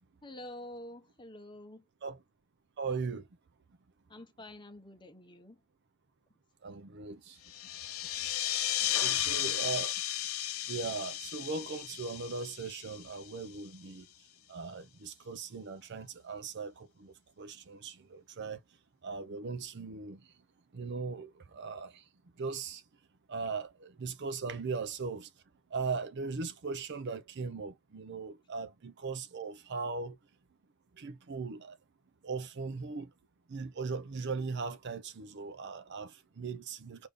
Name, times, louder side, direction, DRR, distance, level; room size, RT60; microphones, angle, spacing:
voice 1, 0.2-1.8 4.1-5.6 8.8-9.4, left 1 dB, 20° left, 0.9 m, -48 dB
voice 2, 2.8-3.3 6.6-7.4 9.0-9.9 10.7-14.1 14.5-18.6 19.0-20.2 20.7-22.0 22.4-22.8 23.3-25.3 25.7-30.2 31.0-31.8 32.2-33.1 33.5-37.1, right 4 dB, 50° right, 0.5 m, -39 dB
sound 1, 7.5-13.6, left 12 dB, 65° left, 0.5 m, -34 dB
5.1 x 2.7 x 3.5 m
head